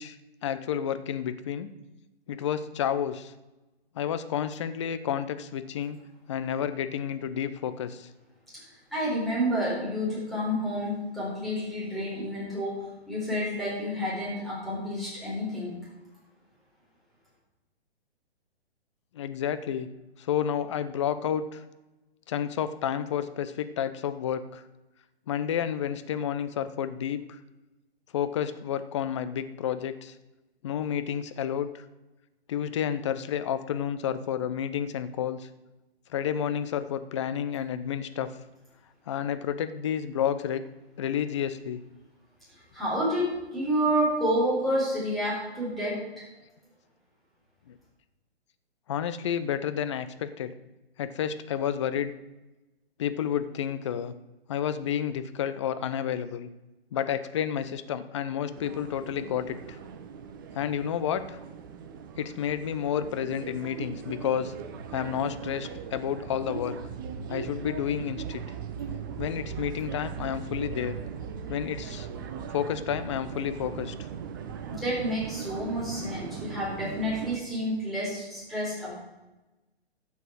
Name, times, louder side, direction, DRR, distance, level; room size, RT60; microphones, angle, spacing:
voice 1, 0.0-1.7 2.3-3.3 4.0-6.0 6.3-8.1 19.1-19.9 20.2-21.6 22.3-24.6 25.3-27.4 28.1-30.1 30.6-31.8 32.5-35.5 36.1-38.3 39.1-40.6 41.0-41.8 47.7-47.8 48.9-50.5 51.0-52.1 53.0-54.1 54.5-56.5 56.9-59.6 60.5-61.4 62.2-64.5 64.9-66.8 67.3-68.4 69.2-70.9 71.5-72.1 72.5-74.0, left 9 dB, 30° left, 12 dB, 0.5 m, -30 dB
voice 2, 8.9-15.7 42.7-46.2 74.7-79.0, equal, ahead, -8 dB, 4.2 m, -29 dB
sound 1, 58.5-77.4, right 7 dB, 20° right, 0.5 m, -39 dB
12.0 x 8.4 x 4.7 m, 1.1 s
figure-of-eight pair, 125°, 32 cm